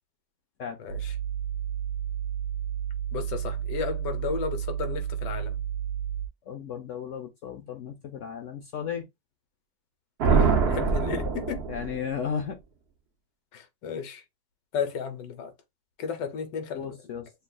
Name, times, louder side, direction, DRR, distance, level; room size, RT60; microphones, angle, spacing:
voice 1, 0.8-1.1 3.1-5.6 10.3-11.6 13.5-14.2 14.7-15.5 16.0-17.0, left 6 dB, 75° left, 1.4 m, -33 dB
sound 1, 0.9-6.3, right 9 dB, 80° right, 1.3 m, -32 dB
voice 2, 6.5-9.1 11.7-12.6 16.7-17.3, left 7 dB, 60° left, 0.8 m, -34 dB
sound 2, 10.2-12.2, right 5 dB, 55° right, 0.7 m, -24 dB
6.8 x 2.4 x 2.3 m
omnidirectional pair, 1.9 m